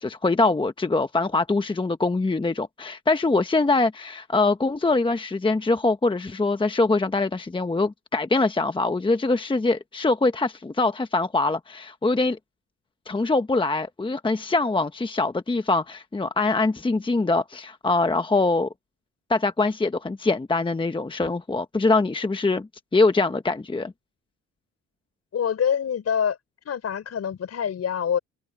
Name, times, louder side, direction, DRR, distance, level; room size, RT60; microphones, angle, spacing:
voice 1, 0.0-12.4 13.1-18.7 19.3-23.9, left 3 dB, 15° left, 1.1 m, -23 dB
voice 2, 25.3-26.4 26.7-28.2, left 8 dB, 55° left, 5.3 m, -25 dB
cardioid pair, 90°, 30 cm